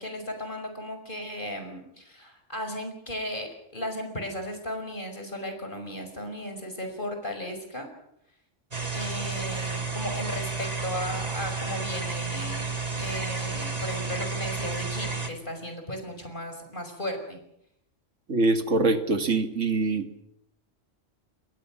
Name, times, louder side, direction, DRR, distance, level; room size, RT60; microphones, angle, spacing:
voice 1, 0.0-7.9 8.9-17.4, equal, 45° left, 5 dB, 5.8 m, -36 dB
sound 1, 8.7-15.3, right 4 dB, 35° right, 2.3 m, -31 dB
voice 2, 18.3-20.1, right 3 dB, 85° right, 7 dB, 2.3 m, -24 dB
27.5 x 22.0 x 6.4 m, 0.78 s
omnidirectional pair, 1.2 m